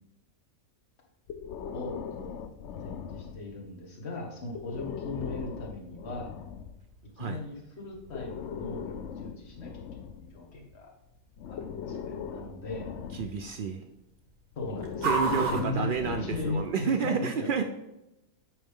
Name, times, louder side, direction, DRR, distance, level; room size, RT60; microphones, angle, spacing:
Breathing, 1.3-3.7 4.5-6.8 7.9-10.8 11.4-13.6 14.5-16.8, left 7 dB, 65° left, 0.8 m, -40 dB
voice 1, 1.7-2.5 2.8-6.3 7.2-10.9 11.5-12.9 14.6-17.5, left 2 dB, 50° left, 0 dB, 1.8 m, -38 dB
sound 1, 2.0-16.8, right 3 dB, 65° right, 1.8 m, -41 dB
voice 2, 13.1-13.8 15.0-17.6, right 6 dB, 90° right, 6 dB, 0.4 m, -30 dB
9.2 x 5.6 x 3.6 m, 0.91 s
omnidirectional pair, 1.5 m